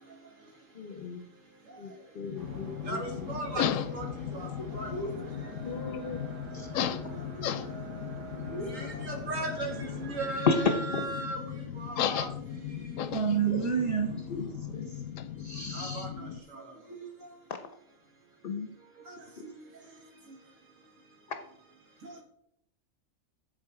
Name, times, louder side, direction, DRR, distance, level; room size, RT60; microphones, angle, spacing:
voice 1, 0.7-1.3 1.8-3.3 5.0-5.3 5.5-6.2 6.5-6.8 10.4-11.0 12.1-12.2 13.5-13.7 14.3-15.1 15.4-16.1 17.5-17.6 18.4-18.7 21.3-21.4, left 4 dB, 50° left, 8 dB, 0.8 m, -34 dB
sound 1, 2.2-16.4, left 9 dB, 85° left, 1.0 m, -36 dB
sound 2, 2.4-10.3, right 2 dB, 45° right, 1.3 m, -46 dB
voice 2, 2.8-3.6 3.9-4.1 4.3-4.5 4.7-5.1 8.5-10.5 11.2-11.4 11.8-12.3 15.7-16.6 22.0-22.2, right 2 dB, 75° right, 2 dB, 2.2 m, -37 dB
voice 3, 13.1-14.3, right 7 dB, 25° right, 2 dB, 1.2 m, -28 dB
7.7 x 7.4 x 4.7 m, 0.78 s
omnidirectional pair, 1.4 m